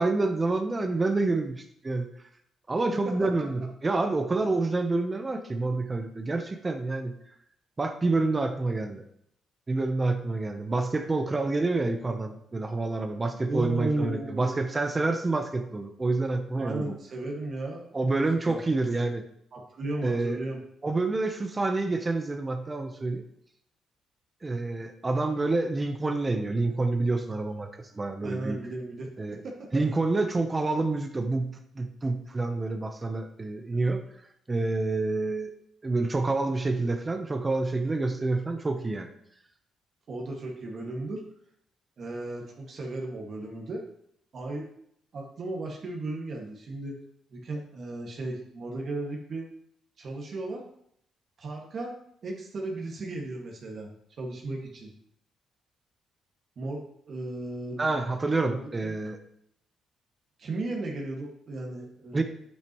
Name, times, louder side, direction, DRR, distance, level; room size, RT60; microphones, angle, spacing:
voice 1, 0.0-2.1 2.7-7.1 7.8-9.0 9.7-17.0 17.9-19.2 20.0-20.4 20.8-23.2 24.4-28.6 29.2-29.4 29.7-34.0 34.5-35.5 35.8-39.1 57.8-59.2 62.1-62.2, right 3 dB, 25° right, 6 dB, 0.8 m, -28 dB
voice 2, 13.5-14.6 16.6-18.2 18.5-18.6 19.5-20.6 28.2-29.7 40.1-41.2 42.0-43.8 44.3-44.7 45.1-47.0 47.3-49.5 50.0-50.6 51.4-53.9 54.2-54.9 56.6-57.8 58.5-58.9 60.4-62.2, right 2 dB, 50° right, -1 dB, 1.8 m, -35 dB
8.9 x 8.6 x 3.0 m, 0.72 s
cardioid pair, 90°, 0 cm